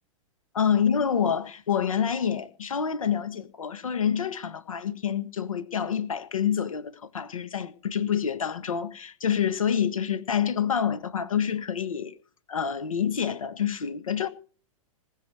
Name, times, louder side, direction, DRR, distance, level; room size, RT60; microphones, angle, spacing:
voice 1, 0.5-12.1 12.5-14.3, left 8 dB, 75° left, 1.6 m, -27 dB
19.5 x 6.9 x 6.6 m
figure-of-eight pair, 100°, 18 cm